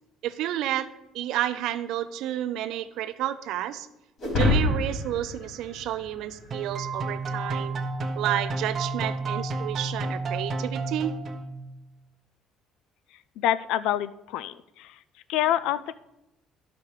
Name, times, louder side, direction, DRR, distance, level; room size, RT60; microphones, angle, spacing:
voice 1, 0.2-0.9 1.1-3.9 4.4-7.8 8.1-11.2, right 12 dB, 75° right, 12 dB, 0.6 m, -30 dB
sound 1, 4.2-6.7, left 2 dB, 50° left, 3.9 m, -26 dB
sound 2, 6.5-11.7, right 3 dB, 35° right, 0.9 m, -31 dB
voice 2, 13.1-15.0 15.3-15.9, left 11 dB, 85° left, 16 dB, 0.3 m, -27 dB
12.0 x 5.8 x 4.9 m, 0.92 s
cardioid pair, 145°, 0 cm